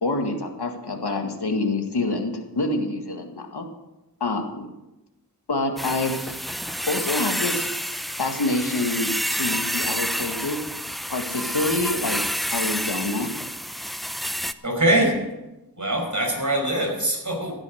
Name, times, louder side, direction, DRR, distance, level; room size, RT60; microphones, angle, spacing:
voice 1, 0.0-3.6 4.2-4.7 5.5-6.4 6.9-7.7 8.2-10.6 10.9-13.3, left 2 dB, 85° left, 4 dB, 1.9 m, -27 dB
sound 1, 5.8-14.5, equal, ahead, 0.6 m, -29 dB
voice 2, 14.6-15.3 15.8-17.6, right 1 dB, 50° right, 1 dB, 5.3 m, -23 dB
15.5 x 9.9 x 6.4 m, 0.99 s
wide cardioid pair, 65°, 39 cm